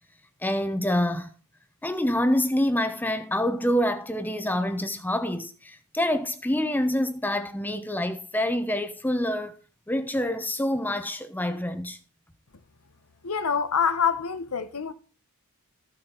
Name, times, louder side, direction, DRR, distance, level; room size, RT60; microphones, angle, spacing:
voice 1, 0.4-1.3 1.8-9.5 9.9-12.0, left 1 dB, 10° left, 0.8 m, -26 dB
voice 2, 13.2-14.9, left 6 dB, 80° left, 1.0 m, -26 dB
14.0 x 6.6 x 4.5 m
head